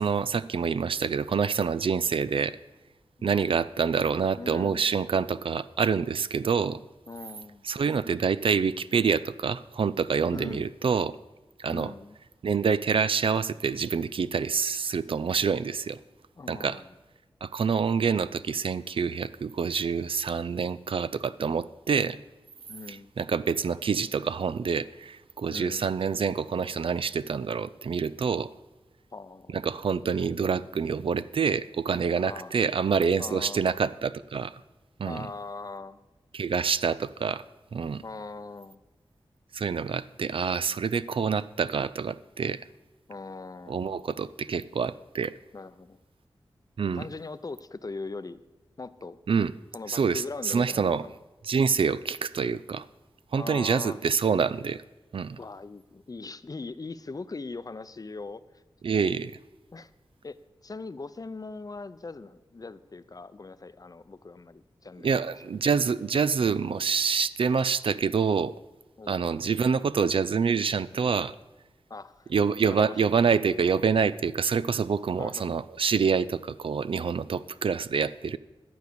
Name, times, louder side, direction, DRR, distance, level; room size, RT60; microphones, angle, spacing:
voice 1, 0.0-2.6 3.2-6.8 7.6-11.2 11.6-11.9 12.4-16.0 16.5-16.8 17.4-22.2 22.9-28.5 29.5-34.6 35.0-35.3 36.3-37.4 37.7-38.0 39.5-42.6 43.7-45.3 46.8-47.0 49.3-49.5 49.9-51.0 51.4-52.9 53.3-54.8 55.1-55.4 58.8-59.3 65.0-68.5 69.1-71.3 72.3-78.4, right 6 dB, 70° right, 16 dB, 0.4 m, -26 dB
voice 2, 3.2-3.6 4.4-5.0 7.1-7.7 10.3-10.7 11.7-12.2 16.4-17.0 22.7-23.1 25.5-25.9 29.1-29.6 32.2-32.6 33.2-33.7 35.1-36.0 38.0-38.8 41.1-41.2 43.1-43.9 45.5-46.0 46.9-48.4 48.8-49.2 49.7-51.2 53.4-54.0 55.4-58.4 59.7-59.9 60.2-60.4 60.6-65.3 69.0-69.2 71.9-72.3 72.6-73.0 75.2-75.4, left 3 dB, 40° left, 14 dB, 0.6 m, -40 dB
12.0 x 7.9 x 6.8 m, 1.1 s
cardioid pair, 55°, 10 cm